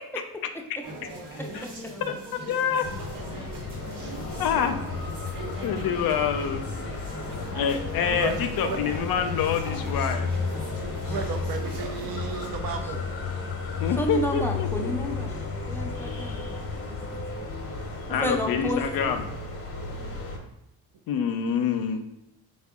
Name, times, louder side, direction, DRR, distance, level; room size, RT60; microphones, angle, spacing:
sound 1, 0.8-12.5, right 1 dB, 85° right, 1.1 m, -40 dB
voice 1, 2.5-2.8 4.4-4.8 5.6-6.6 7.5-10.3 13.8-15.1 18.1-19.2 21.1-22.0, left 7 dB, 65° left, 7 dB, 0.5 m, -26 dB
sound 2, 2.8-20.4, left 4 dB, 35° left, 0.7 m, -33 dB
voice 2, 11.1-13.0, right 5 dB, 60° right, 4 dB, 0.6 m, -33 dB
voice 3, 14.0-17.2 18.1-19.2, right 1 dB, 5° left, 2 dB, 0.4 m, -32 dB
3.4 x 2.2 x 3.5 m, 0.83 s
supercardioid pair, 70°, 39 cm